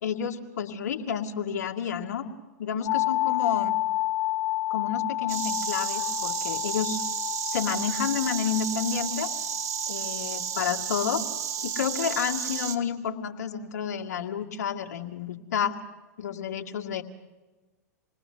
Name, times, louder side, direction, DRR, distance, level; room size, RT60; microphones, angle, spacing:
voice 1, 0.0-2.2 2.6-3.8 4.7-7.0 7.4-9.3 9.9-11.3 11.6-15.7 16.2-17.0, left 7 dB, 70° left, 2 dB, 2.2 m, -30 dB
sound 1, 2.9-12.6, left 17 dB, 45° left, 0.9 m, -31 dB
Insect, 5.3-12.8, right 9 dB, 65° right, 2.2 m, -32 dB
27.5 x 20.5 x 6.8 m, 1.2 s
hypercardioid pair, 100°, 9 cm